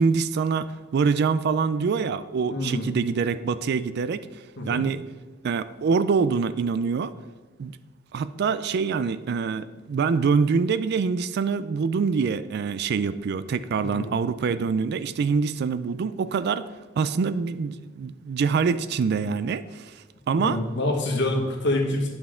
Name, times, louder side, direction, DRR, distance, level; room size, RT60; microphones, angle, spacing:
voice 1, 0.0-4.3 4.6-5.0 5.4-7.1 7.6-7.8 8.1-16.6 17.0-19.9 20.3-20.6, right 5 dB, 55° right, 14 dB, 0.3 m, -25 dB
voice 2, 2.5-2.9 4.6-4.8 13.9-14.1 20.3-22.1, left 1 dB, 60° left, 0 dB, 1.6 m, -26 dB
10.0 x 5.9 x 3.7 m, 1.3 s
head